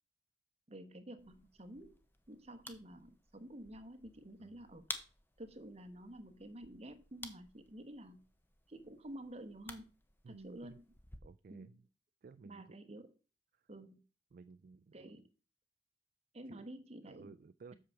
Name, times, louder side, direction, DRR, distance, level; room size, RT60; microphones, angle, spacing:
voice 1, 0.7-2.0 2.3-4.9 5.4-8.2 8.7-9.8 10.3-10.8 11.5-11.8 12.4-13.1 13.7-14.0 14.9-15.3 16.3-17.3, right 1 dB, 35° right, 9 dB, 1.1 m, -50 dB
sound 1, 1.2-11.2, left 2 dB, 10° left, 0.8 m, -53 dB
voice 2, 10.2-10.8 11.2-11.8 12.2-12.8 13.5-13.6 14.3-15.1 16.5-16.7 17.1-17.7, right 4 dB, 50° right, 14 dB, 0.3 m, -55 dB
7.8 x 4.8 x 6.9 m, 0.34 s
head